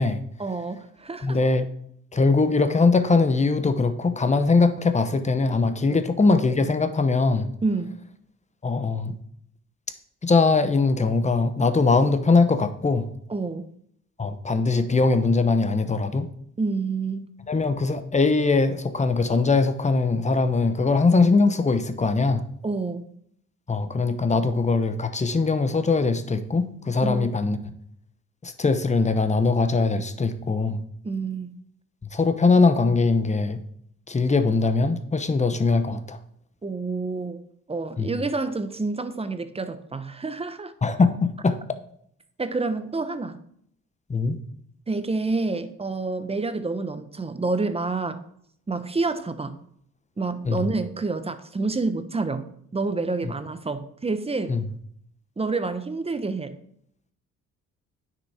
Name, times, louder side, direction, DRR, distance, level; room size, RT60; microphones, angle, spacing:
voice 1, 0.4-1.4 5.9-6.0 7.6-7.9 13.3-13.7 16.6-17.3 22.6-23.0 27.0-27.5 31.0-31.5 36.6-37.4 37.7-40.7 42.4-43.4 44.9-48.2 48.7-49.5 50.2-52.4 52.7-54.6 55.4-56.5, right 3 dB, 20° right, 0.8 m, -28 dB
voice 2, 1.2-1.7 2.1-7.5 8.6-9.2 10.2-13.1 14.2-16.3 17.5-22.5 23.7-27.6 28.4-30.8 32.1-33.6 34.1-36.2 38.0-38.1 40.8-41.6 44.1-44.4 50.4-50.7 53.2-53.3 54.5-54.6, left 3 dB, 25° left, 0.9 m, -21 dB
9.8 x 6.1 x 4.3 m
cardioid pair, 90°, 30 cm